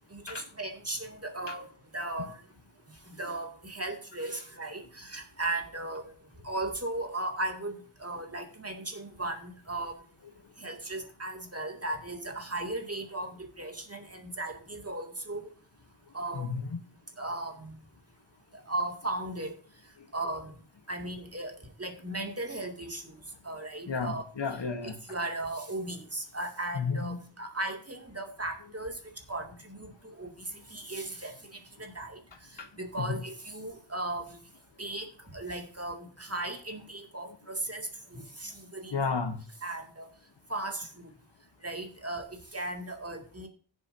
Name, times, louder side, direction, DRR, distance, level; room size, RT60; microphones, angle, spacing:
voice 1, 0.1-1.7 1.9-2.4 3.2-6.1 6.4-7.7 8.0-10.0 10.6-15.4 16.1-16.5 17.2-17.8 18.5-19.6 20.1-20.5 20.9-21.5 21.8-24.3 25.1-29.0 29.3-32.2 32.5-34.4 34.8-38.9 39.6-40.1 40.5-41.1 41.6-43.5, right 2 dB, 30° right, 2.4 m, -36 dB
voice 2, 16.3-16.8 23.9-24.9 26.7-27.2 33.0-33.2 38.9-39.4, left 5 dB, 60° left, 1.3 m, -32 dB
16.0 x 7.4 x 2.7 m
wide cardioid pair, 70°, 47 cm